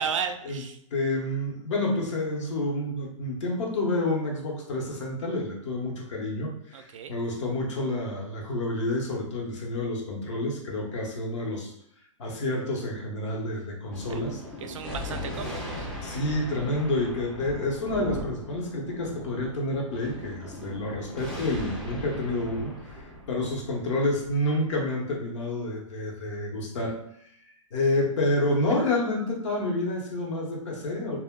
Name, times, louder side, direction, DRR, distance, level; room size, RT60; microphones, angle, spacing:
voice 1, 0.0-0.8 6.7-7.2 14.6-15.9, right 6 dB, 75° right, 7 dB, 0.4 m, -33 dB
voice 2, 0.9-11.7 12.2-14.4 16.0-27.0 27.7-31.2, left 1 dB, 65° left, 0 dB, 0.9 m, -29 dB
Thunder, 13.9-24.8, left 1 dB, 5° left, 0.3 m, -38 dB
2.2 x 2.1 x 3.5 m, 0.73 s
hypercardioid pair, 150°, 17 cm